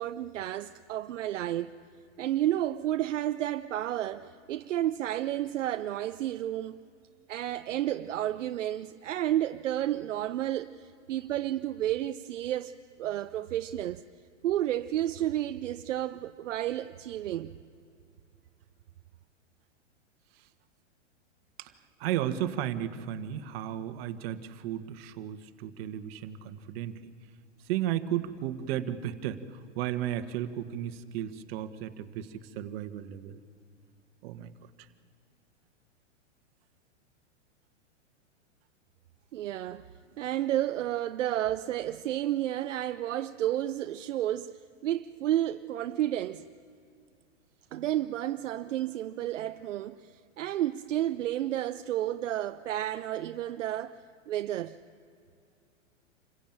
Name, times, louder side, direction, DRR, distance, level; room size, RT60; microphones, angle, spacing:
voice 1, 0.0-1.7 2.2-6.8 7.3-12.7 13.0-14.0 14.4-17.5 39.3-39.9 40.2-46.4 47.7-54.0 54.3-54.8, right 12 dB, 75° right, 0.7 m, -31 dB
voice 2, 22.0-27.1 27.6-33.4 34.2-34.5 34.8-34.9, right 11 dB, 50° right, 1.6 m, -34 dB
27.0 x 16.0 x 8.9 m
hypercardioid pair, 120°, 37 cm